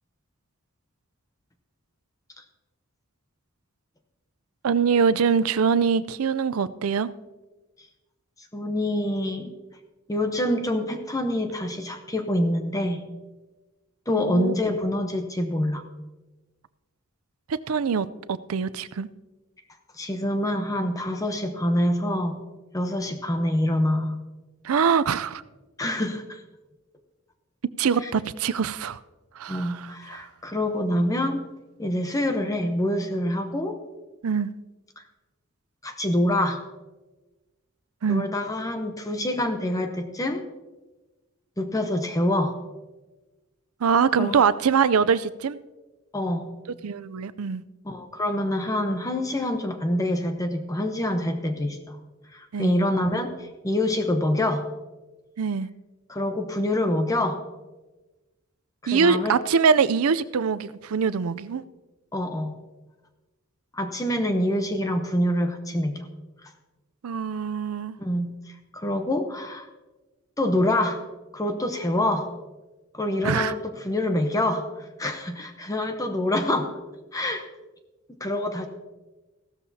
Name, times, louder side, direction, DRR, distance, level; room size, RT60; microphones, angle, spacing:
voice 1, 4.6-7.1 14.1-14.5 17.5-19.1 24.6-25.4 27.8-29.0 29.4-30.2 34.2-34.5 38.0-38.2 43.8-45.6 46.8-47.6 52.5-52.8 55.4-55.7 58.9-61.6 67.0-68.0 73.2-73.5, right 6 dB, 80° right, 16 dB, 0.5 m, -23 dB
voice 2, 8.5-9.5 10.1-13.0 14.1-15.8 19.9-22.4 22.7-24.2 25.8-26.4 28.0-28.1 29.5-31.4 31.8-33.8 35.8-36.6 38.1-40.4 41.6-42.5 44.2-44.4 46.1-46.5 47.8-52.0 52.3-54.7 56.1-57.4 58.8-59.3 62.1-62.6 63.7-66.1 68.0-69.7 70.4-71.0 71.3-72.3 72.9-74.6 75.0-76.7 77.1-77.5 78.2-78.7, left 1 dB, 15° left, 6 dB, 0.8 m, -26 dB
15.5 x 13.0 x 2.8 m, 1.2 s
head